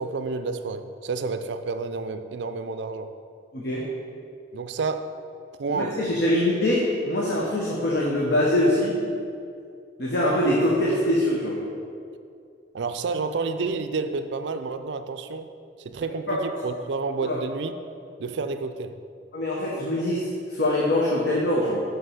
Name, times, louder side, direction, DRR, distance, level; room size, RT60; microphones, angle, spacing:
voice 1, 0.0-3.1 4.5-5.1 5.6-6.0 12.7-15.5 15.8-17.7 18.2-18.9, right 4 dB, 70° right, 9 dB, 0.4 m, -30 dB
voice 2, 3.5-3.9 5.7-9.0 10.0-11.6 16.3-16.4 17.2-17.4 19.3-21.8, left 1 dB, 65° left, -4 dB, 1.0 m, -23 dB
5.7 x 5.6 x 5.6 m, 2.4 s
head